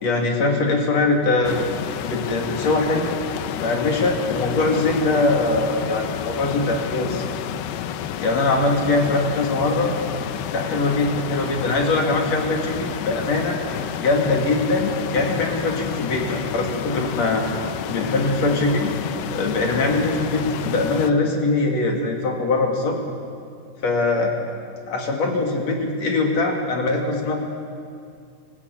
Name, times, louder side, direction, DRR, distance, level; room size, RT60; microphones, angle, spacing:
voice 1, 0.0-1.6 2.0-3.1 3.6-7.2 8.2-9.9 10.5-12.7 13.0-13.6 14.0-17.4 17.8-18.9 19.3-23.0 23.8-24.3 24.9-27.4, left 3 dB, 50° left, 1 dB, 3.2 m, -22 dB
sound 1, 1.4-21.1, left 9 dB, 85° left, 2.7 m, -30 dB
26.0 x 15.5 x 8.3 m, 2.3 s
omnidirectional pair, 4.3 m